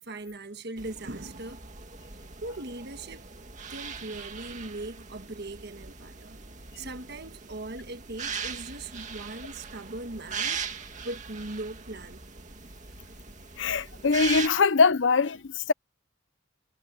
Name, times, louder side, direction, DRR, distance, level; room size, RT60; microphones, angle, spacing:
voice 1, 0.0-1.7 2.4-3.3 3.7-6.4 6.7-12.2, right 2 dB, 55° right, 1.5 m, -39 dB
sound 1, 0.8-14.5, right 6 dB, 40° right, 2.2 m, -40 dB
voice 2, 13.6-15.7, left 4 dB, 65° left, 0.7 m, -22 dB
head